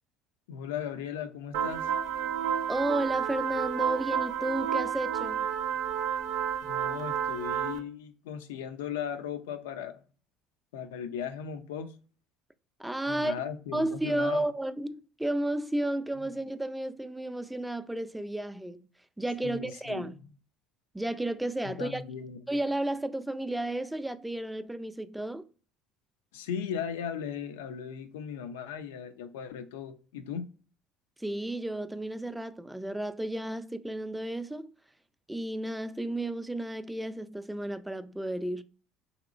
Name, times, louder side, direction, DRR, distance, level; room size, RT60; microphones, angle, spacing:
voice 1, 0.5-1.9 6.6-10.0 10.7-11.9 13.1-14.5 19.4-20.2 21.6-22.4 26.3-30.5, left 8 dB, 90° left, 0.4 m, -37 dB
sound 1, 1.5-7.8, right 8 dB, 80° right, 0.5 m, -30 dB
voice 2, 2.7-5.5 12.8-13.4 13.7-18.9 19.2-20.2 20.9-22.0 22.5-25.5 31.2-34.7 35.3-38.6, right 1 dB, 5° right, 0.3 m, -32 dB
2.9 x 2.8 x 2.5 m
supercardioid pair, 80°, 0 cm